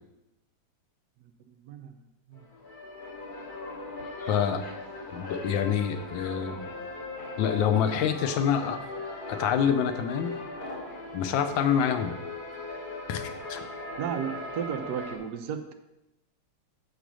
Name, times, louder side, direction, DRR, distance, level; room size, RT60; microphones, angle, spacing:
voice 1, 1.5-1.9 2.3-2.4 14.0-15.7, right 8 dB, 80° right, 6 dB, 0.9 m, -34 dB
sound 1, 2.3-15.2, left 2 dB, 40° left, 0.7 m, -39 dB
voice 2, 4.3-4.6 5.1-6.7 7.4-8.8 9.3-10.3 11.1-12.2 13.1-13.6, left 8 dB, 70° left, 9 dB, 1.3 m, -26 dB
7.2 x 5.0 x 6.2 m, 0.93 s
omnidirectional pair, 2.4 m